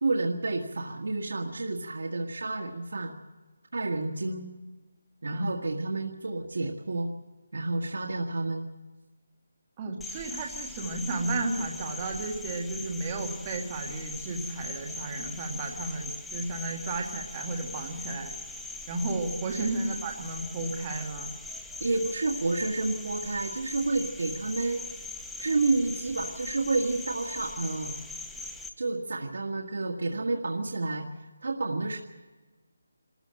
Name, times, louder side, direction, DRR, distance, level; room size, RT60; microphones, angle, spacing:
voice 1, 0.0-3.1 3.7-4.5 5.2-7.1 7.5-8.7 19.5-19.8 21.8-24.8 25.4-28.0 28.8-31.1 31.4-32.0, right 3 dB, 65° right, 1 dB, 1.7 m, -30 dB
voice 2, 9.8-18.3 18.9-21.3, right 2 dB, 20° right, 1 dB, 1.6 m, -33 dB
Cricket, 10.0-28.7, left 3 dB, ahead, 0.8 m, -40 dB
25.5 x 14.0 x 7.7 m, 1.3 s
hypercardioid pair, 175°, 0 cm